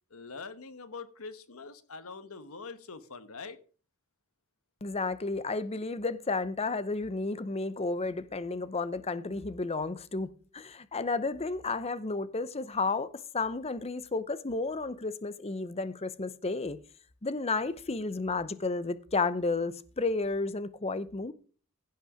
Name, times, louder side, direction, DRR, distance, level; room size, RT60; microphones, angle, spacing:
voice 1, 0.1-3.6, left 4 dB, 70° left, 1.2 m, -44 dB
voice 2, 4.8-16.8 17.2-21.3, left 3 dB, 25° left, 0.7 m, -32 dB
16.0 x 5.6 x 5.0 m
head